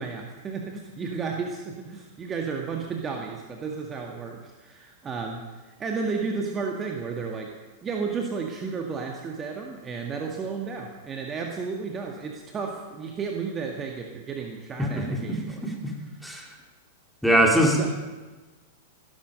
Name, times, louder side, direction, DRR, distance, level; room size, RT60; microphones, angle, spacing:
voice 1, 0.0-7.5 7.8-15.7 16.0-16.2 17.8-17.9, right 5 dB, 25° right, 2 dB, 1.7 m, -33 dB
voice 2, 17.2-17.9, right 1 dB, ahead, 0 dB, 2.9 m, -21 dB
16.5 x 12.5 x 5.2 m, 1.2 s
figure-of-eight pair, 95°, 0 cm